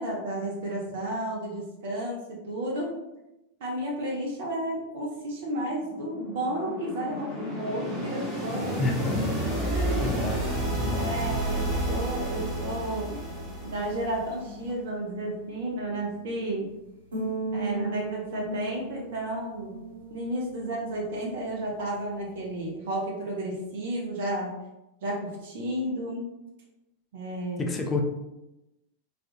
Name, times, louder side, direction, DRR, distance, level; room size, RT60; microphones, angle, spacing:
voice 1, 0.0-2.9 3.6-8.8 9.7-10.2 10.9-13.2 13.6-16.7 17.5-19.8 20.1-24.5 25.0-26.3 27.1-27.7, right 1 dB, 55° right, -2 dB, 0.6 m, -32 dB
sound 1, 5.8-14.6, right 1 dB, 20° right, 1.1 m, -31 dB
voice 2, 8.8-9.4 10.0-11.2 27.6-28.0, left 2 dB, 20° left, 2 dB, 0.4 m, -29 dB
sound 2, 12.3-22.7, right 2 dB, 70° right, 1.1 m, -40 dB
2.4 x 2.3 x 2.6 m, 0.94 s
figure-of-eight pair, 90°, 0 cm